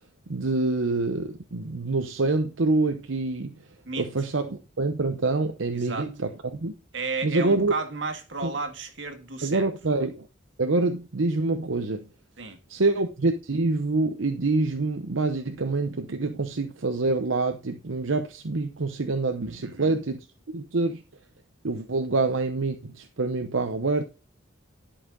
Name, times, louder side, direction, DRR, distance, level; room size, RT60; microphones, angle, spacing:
voice 1, 0.3-3.5 4.0-6.7 7.2-7.7 8.4-8.5 9.4-10.3 10.6-12.0 12.7-20.2 20.5-21.0 21.6-24.0, right 3 dB, 85° right, 0.8 m, -26 dB
voice 2, 5.7-6.1 6.9-9.7 12.4-12.6 19.6-20.0, right 3 dB, 70° right, 1.9 m, -33 dB
11.0 x 5.8 x 3.8 m
head